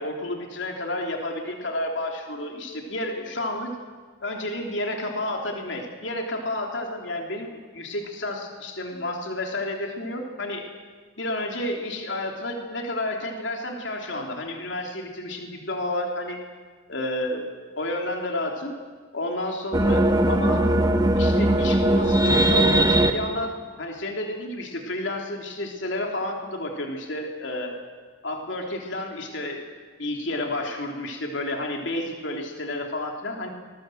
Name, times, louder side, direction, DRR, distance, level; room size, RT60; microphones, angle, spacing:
voice 1, 0.0-3.7 4.2-10.7 11.2-16.4 16.9-17.5 17.8-18.8 19.1-20.7 21.2-27.8 28.2-29.7 30.0-33.5, left 1 dB, 65° left, 2 dB, 3.3 m, -31 dB
sound 1, 19.7-23.1, right 1 dB, 20° right, 1.4 m, -19 dB
25.0 x 21.5 x 7.8 m, 1.5 s
head